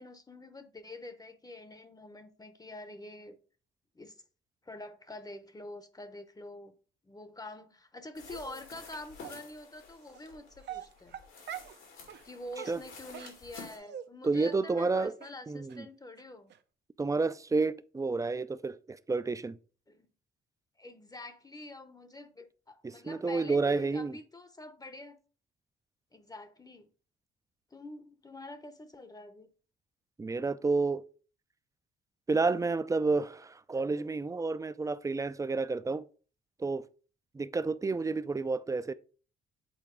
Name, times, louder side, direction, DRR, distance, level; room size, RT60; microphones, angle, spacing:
voice 1, 0.0-3.4 3.9-4.2 4.6-6.7 7.0-11.2 12.2-16.5 19.9-20.1 20.8-25.2 26.1-26.9 27.7-29.5, left 2 dB, 20° left, 0.7 m, -46 dB
sound 1, 8.1-13.8, left 4 dB, 90° left, 2.5 m, -51 dB
Dog, 8.3-8.6 9.2-9.4 10.1-10.3 10.6-11.8 12.1-12.2 12.5-14.1 14.3-14.5 14.8-14.9 15.2-15.3 15.7-15.8 16.2-16.3 16.5-16.6, right 10 dB, 60° right, 0.6 m, -44 dB
voice 2, 14.2-15.1 15.5-15.8 17.0-19.6 22.8-24.1 30.2-31.0 32.3-36.0 36.6-36.9 37.3-38.9, right 3 dB, 15° right, 0.4 m, -30 dB
7.8 x 4.0 x 3.7 m
cardioid pair, 90°, 20 cm